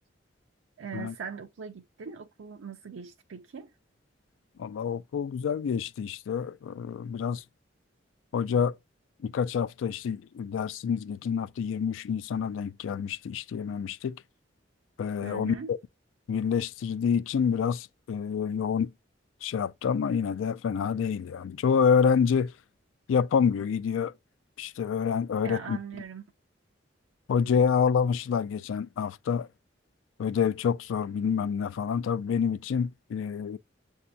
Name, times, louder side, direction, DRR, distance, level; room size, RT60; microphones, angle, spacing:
voice 1, 0.8-3.7 15.2-15.7 25.4-26.2, right 6 dB, 85° right, 0.5 m, -40 dB
voice 2, 4.6-7.4 8.3-8.8 9.2-14.2 15.0-15.8 16.3-18.9 19.4-22.5 23.1-24.1 24.6-25.8 27.3-29.5 30.2-33.6, left 6 dB, 85° left, 0.3 m, -27 dB
7.5 x 2.7 x 2.2 m
head